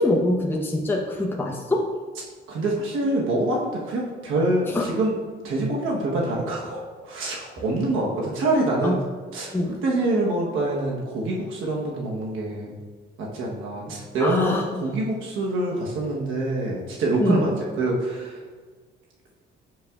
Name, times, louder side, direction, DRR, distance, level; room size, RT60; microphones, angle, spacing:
voice 1, 0.0-1.9 4.7-4.9 8.8-9.0 9.5-9.8 14.2-14.7 17.2-17.5, left 1 dB, 10° left, -2 dB, 0.8 m, -24 dB
voice 2, 2.5-5.1 5.4-9.0 9.3-12.7 13.2-17.5 17.8-18.4, right 2 dB, 90° right, -2 dB, 1.1 m, -25 dB
7.4 x 6.4 x 2.4 m, 1.5 s
cardioid pair, 90°, 20 cm